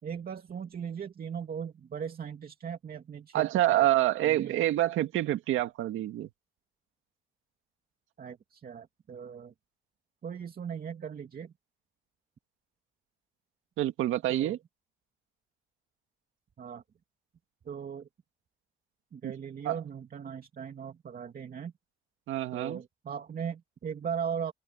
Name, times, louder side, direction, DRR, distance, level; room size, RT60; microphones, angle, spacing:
voice 1, 0.0-3.9 4.2-4.6 8.2-9.5 10.2-11.5 14.3-14.6 16.6-16.8 17.6-18.1 19.1-21.7 22.5-24.5, right 7 dB, 50° right, 2.5 m, -38 dB
voice 2, 3.3-6.3 13.8-14.6 19.2-19.3 19.7-19.8 22.3-22.8, right 14 dB, 90° right, 2.1 m, -27 dB
cardioid pair, 90°, 20 cm